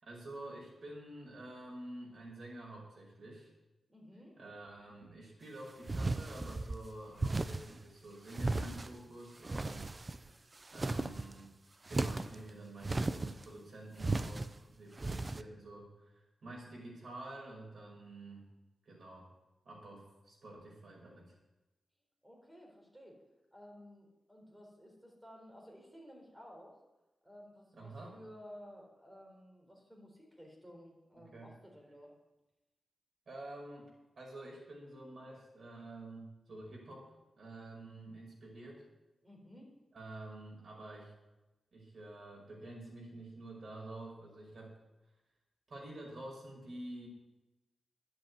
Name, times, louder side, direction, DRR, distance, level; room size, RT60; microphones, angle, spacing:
voice 1, 0.0-3.5 4.4-11.5 11.9-18.5 18.8-19.3 19.6-21.3 27.7-28.2 31.1-31.5 33.3-37.1 37.4-38.8 39.9-41.1 41.7-44.8 45.7-47.1, right 2 dB, 55° right, -2 dB, 5.6 m, -49 dB
voice 2, 3.9-4.4 22.2-23.2 23.5-26.8 27.2-32.1 39.2-39.7, equal, 10° right, -1 dB, 4.1 m, -55 dB
sound 1, 5.9-6.8 7.2-7.8 8.3-9.0 9.4-10.3 10.6-11.3 11.9-12.4 12.8-13.5 14.0-14.5 15.0-15.4, right 2 dB, 25° right, 0.5 m, -35 dB
11.5 x 8.0 x 9.4 m, 1.0 s
wide cardioid pair, 125°, 0 cm